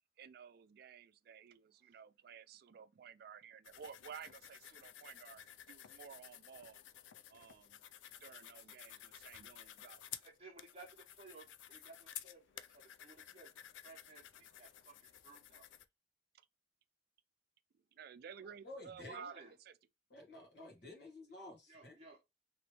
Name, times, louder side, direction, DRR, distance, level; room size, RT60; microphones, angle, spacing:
voice 1, 0.2-5.4 5.7-6.8 7.3-7.8 8.2-10.0 17.7-19.7, right 7 dB, 55° right, 0.3 m, -54 dB
sound 1, 3.6-15.9, left 11 dB, 85° left, 0.4 m, -54 dB
voice 2, 10.2-13.5 13.8-15.7 19.0-19.5 21.7-22.2, right 3 dB, 30° right, 0.9 m, -58 dB
voice 3, 18.6-19.3 20.1-22.0, left 2 dB, 60° left, 1.2 m, -52 dB
3.1 x 3.0 x 2.9 m
head